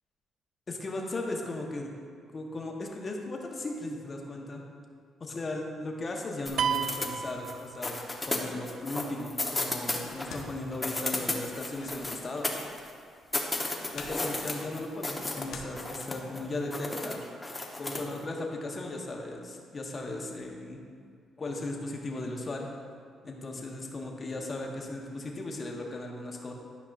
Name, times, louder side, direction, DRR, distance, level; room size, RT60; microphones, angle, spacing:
voice 1, 0.7-1.9 2.3-4.6 5.2-8.0 8.3-12.6 13.9-17.2 17.8-20.8 21.4-22.7 23.2-26.5, left 2 dB, 35° left, 0 dB, 1.0 m, -37 dB
sound 1, 6.4-7.6 7.8-10.4 10.7-12.9 13.3-15.4 15.8-16.4 16.7-18.1, left 2 dB, 15° left, 0.9 m, -33 dB
sound 2, 6.6-8.3, right 7 dB, 70° right, 0.3 m, -32 dB
sound 3, 10.0-16.4, left 4 dB, 70° left, 0.8 m, -48 dB
11.5 x 5.3 x 2.5 m, 2.1 s
cardioid pair, 90°, 0 cm